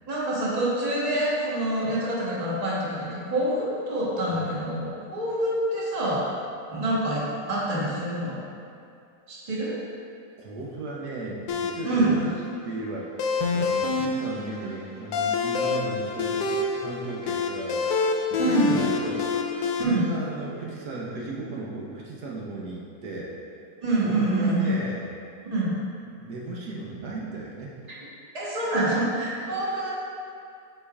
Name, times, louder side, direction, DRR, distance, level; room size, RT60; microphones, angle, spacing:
voice 1, 0.1-6.2 6.7-8.4 9.3-9.8 11.8-12.1 18.4-18.8 19.8-20.1 23.8-24.8 25.4-25.7 28.3-29.9, right 1 dB, 25° right, -7 dB, 1.2 m, -26 dB
voice 2, 10.4-12.4 12.6-18.0 18.3-19.3 19.8-23.4 24.0-25.1 26.2-27.8, right 2 dB, 75° right, -4 dB, 1.3 m, -35 dB
sound 1, 11.5-19.8, left 4 dB, 75° left, 1.1 m, -27 dB
7.9 x 5.4 x 2.4 m, 2.4 s
omnidirectional pair, 1.7 m